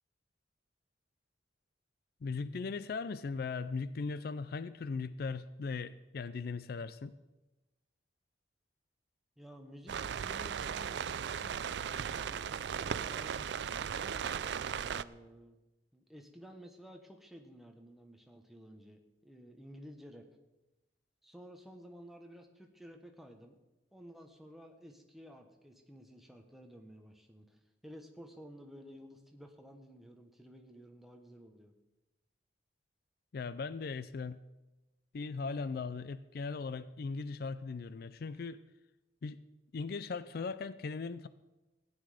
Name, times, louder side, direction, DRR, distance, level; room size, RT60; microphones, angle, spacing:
voice 1, 2.2-7.1 33.3-34.4 35.1-38.6 39.2-39.4 39.7-41.3, left 4 dB, 55° left, 15 dB, 0.4 m, -38 dB
voice 2, 9.4-14.3 14.7-15.6 15.9-20.3 21.2-23.6 23.9-31.7, equal, ahead, 3 dB, 1.2 m, -53 dB
sound 1, 9.9-15.0, right 7 dB, 70° right, 0.4 m, -37 dB
15.0 x 9.6 x 5.0 m, 1.1 s
head